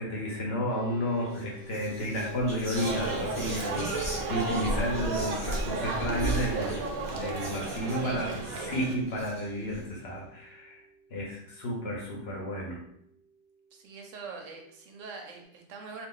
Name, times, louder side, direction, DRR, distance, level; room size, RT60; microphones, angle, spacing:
voice 1, 0.0-10.8 11.1-12.8, equal, 55° left, -2 dB, 0.8 m, -32 dB
sound 1, 0.7-15.4, right 4 dB, 25° left, 0.9 m, -55 dB
Whispering, 1.2-1.4 1.7-9.8, equal, 20° right, 0.8 m, -38 dB
sound 2, 2.8-8.9, right 3 dB, 90° right, 1.1 m, -33 dB
voice 2, 7.6-8.4 13.7-16.1, right 4 dB, 70° right, 2 dB, 0.9 m, -44 dB
2.4 x 2.4 x 3.6 m, 0.71 s
omnidirectional pair, 1.5 m